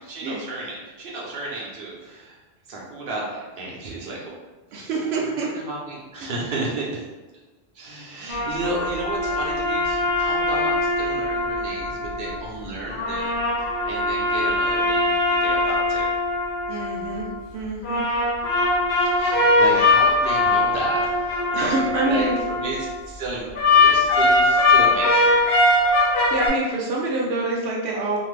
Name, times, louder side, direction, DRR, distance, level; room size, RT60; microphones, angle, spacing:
voice 1, 0.1-2.4 2.7-4.2 5.2-7.0 7.7-13.5 13.8-16.1 19.2-21.2 22.1-25.8, right 2 dB, 65° right, -4 dB, 0.9 m, -32 dB
voice 2, 4.7-5.5 16.7-17.3 17.5-18.1 21.5-22.4 26.3-28.2, right 2 dB, 90° right, -2 dB, 0.8 m, -26 dB
sound 1, 8.3-12.3 12.9-17.3 17.8-23.0 23.6-26.5, left 2 dB, 85° left, 1.0 m, -21 dB
2.5 x 2.5 x 3.2 m, 1.2 s
omnidirectional pair, 1.1 m